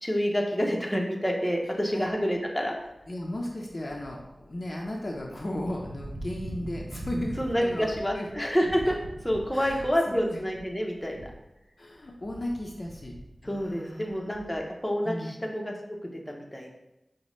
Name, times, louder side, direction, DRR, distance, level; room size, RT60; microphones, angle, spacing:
voice 1, 0.0-2.7 7.4-9.0 9.2-11.3 13.4-15.7 16.0-16.7, equal, 10° left, 0 dB, 0.7 m, -28 dB
sound 1, 2.0-2.3 2.8-11.6 11.9-14.8, right 1 dB, 75° right, 0.4 m, -43 dB
voice 2, 3.1-8.3 8.6-8.9 9.5-10.4 11.8-13.2 13.4-14.5 15.0-15.4, left 1 dB, 50° left, 0 dB, 0.5 m, -36 dB
5.2 x 2.1 x 3.1 m, 0.93 s
wide cardioid pair, 50°, 0 cm